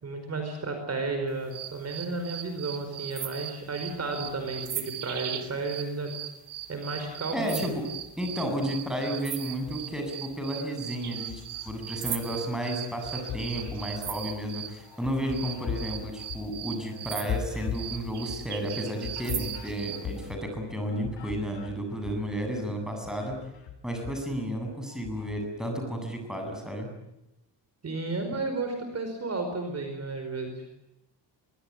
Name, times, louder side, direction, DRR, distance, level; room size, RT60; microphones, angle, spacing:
voice 1, 0.0-6.2 6.7-7.7 27.8-30.7, right 3 dB, 35° right, 6 dB, 4.9 m, -33 dB
sound 1, 1.5-14.8 15.3-20.1, right 10 dB, 65° right, 3.0 m, -38 dB
voice 2, 7.3-7.9 8.2-23.4 23.8-26.9, equal, ahead, 3 dB, 7.8 m, -32 dB
sound 2, 9.5-10.4 10.8-12.4 12.8-22.5 22.8-25.4, left 7 dB, 85° left, 6.8 m, -40 dB
23.5 x 23.5 x 10.0 m, 0.90 s
wide cardioid pair, 155°, 42 cm